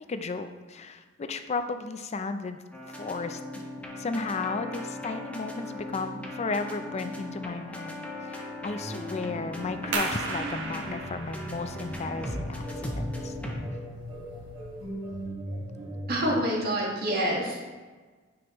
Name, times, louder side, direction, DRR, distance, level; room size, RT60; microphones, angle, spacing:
voice 1, 0.1-2.6 3.0-3.4 4.0-13.3, left 3 dB, 35° left, 9 dB, 0.4 m, -34 dB
Nodens (Field Song), 2.7-13.6, left 1 dB, 5° left, 0.9 m, -38 dB
sound 1, 8.8-16.4, equal, 35° right, 1.7 m, -39 dB
sound 2, 9.9-15.3, right 3 dB, 70° right, 1.0 m, -37 dB
voice 2, 16.1-17.7, equal, 50° right, -3 dB, 1.7 m, -27 dB
9.4 x 4.9 x 3.0 m, 1.4 s
head